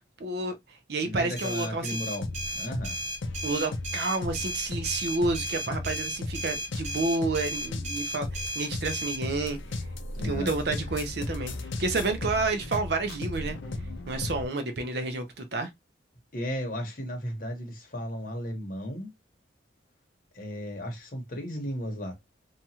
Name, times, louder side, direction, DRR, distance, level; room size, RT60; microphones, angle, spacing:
voice 1, 0.2-0.5 0.9-2.0 3.4-9.6 10.2-11.5 11.8-13.6 14.1-15.7, right 3 dB, 55° right, 0.6 m, -30 dB
voice 2, 1.0-2.2 2.5-3.0 10.1-10.5 16.3-19.1 20.3-22.1, equal, 45° left, 1.0 m, -34 dB
sound 1, 1.4-9.2, right 1 dB, 40° right, 0.9 m, -35 dB
sound 2, 2.2-14.5, left 2 dB, 80° left, 0.5 m, -36 dB
2.8 x 2.3 x 2.8 m
head